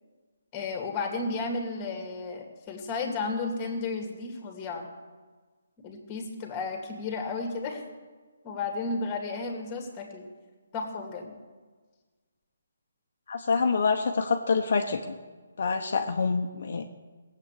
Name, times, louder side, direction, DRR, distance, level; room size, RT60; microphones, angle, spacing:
voice 1, 0.5-4.9 5.8-7.8 8.4-10.2 10.7-11.3, left 3 dB, 15° left, 3 dB, 2.4 m, -33 dB
voice 2, 13.3-15.2 15.6-16.9, left 5 dB, 55° left, 4 dB, 1.1 m, -26 dB
18.0 x 8.1 x 8.3 m, 1.4 s
hypercardioid pair, 165°, 0 cm